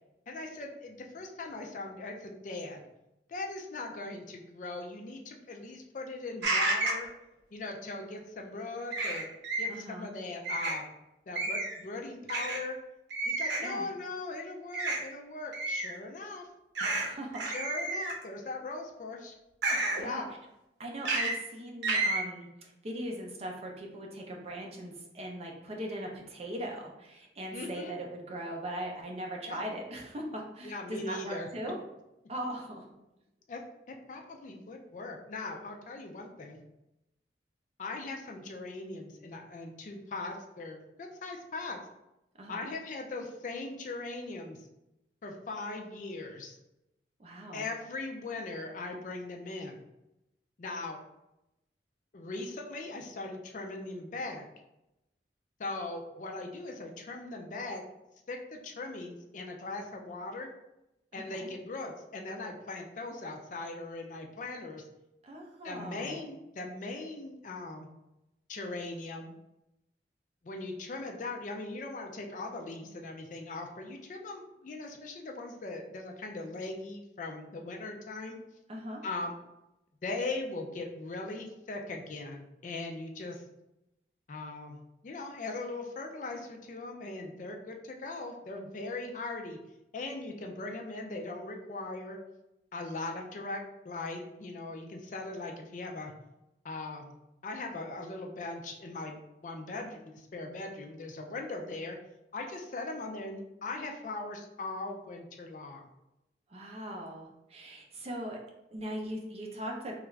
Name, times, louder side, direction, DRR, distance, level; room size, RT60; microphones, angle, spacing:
voice 1, 0.3-2.9 3.3-7.1 7.5-9.3 9.6-10.9 11.3-12.8 13.3-16.5 17.5-19.4 19.9-20.3 27.5-27.9 29.5-29.6 30.6-31.5 33.5-33.6 33.9-36.6 37.8-41.8 42.5-44.7 45.2-46.6 47.5-49.8 50.6-51.0 52.1-54.5 55.6-57.8 58.3-60.5 61.1-64.8 65.6-67.9 68.5-69.3 70.4-78.4 79.0-79.3 80.0-83.4 84.3-89.6 89.9-92.2 92.7-96.1 96.6-97.2 97.4-102.0 102.3-105.9, left 2 dB, 45° left, 2 dB, 0.4 m, -40 dB
sound 1, 6.4-7.0 8.9-9.7 10.4-10.8 11.4-11.8 12.3-12.6 13.1-13.7 14.7-15.0 15.5-15.9 16.7-17.1 17.3-18.2 19.6-20.0 21.0-21.3 21.8-22.2, right 2 dB, 85° right, 0.7 m, -30 dB
voice 2, 9.7-10.1 13.6-13.9 16.8-17.4 20.0-20.3 20.8-31.8 32.3-32.8 42.4-42.7 47.2-47.7 61.3-61.5 65.2-66.2 78.7-79.0 106.5-108.4 108.7-109.9, right 1 dB, 35° right, 0 dB, 0.5 m, -40 dB
3.3 x 2.4 x 3.1 m, 0.91 s
head